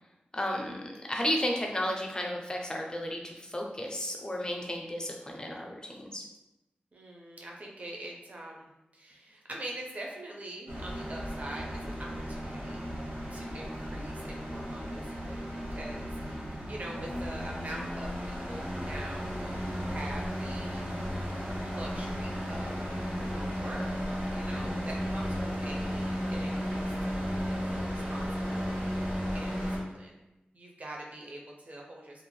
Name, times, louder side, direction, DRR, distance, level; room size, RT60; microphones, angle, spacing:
voice 1, 0.3-6.2, left 1 dB, 25° left, 0 dB, 0.5 m, -33 dB
voice 2, 6.9-12.8 13.3-20.8 21.7-22.8 23.1-28.9 29.3-30.2 30.5-32.2, right 1 dB, 50° right, -1 dB, 0.5 m, -44 dB
sound 1, 10.7-29.8, equal, 75° right, 1.0 m, -34 dB
sound 2, 11.5-28.2, equal, 85° left, 0.4 m, -49 dB
2.5 x 2.0 x 3.1 m, 0.96 s
wide cardioid pair, 80°, 3 cm